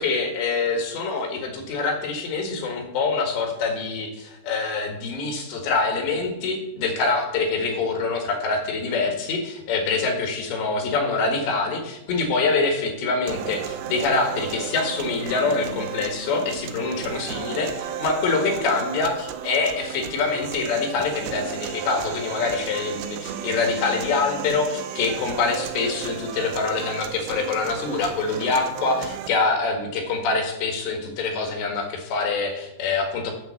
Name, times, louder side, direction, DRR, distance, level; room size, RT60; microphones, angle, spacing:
voice 1, 0.0-33.3, left 4 dB, 85° left, 3 dB, 4.1 m, -25 dB
sound 1, 13.3-29.3, right 9 dB, 90° right, 3.0 m, -34 dB
9.5 x 7.3 x 7.1 m, 0.86 s
omnidirectional pair, 4.9 m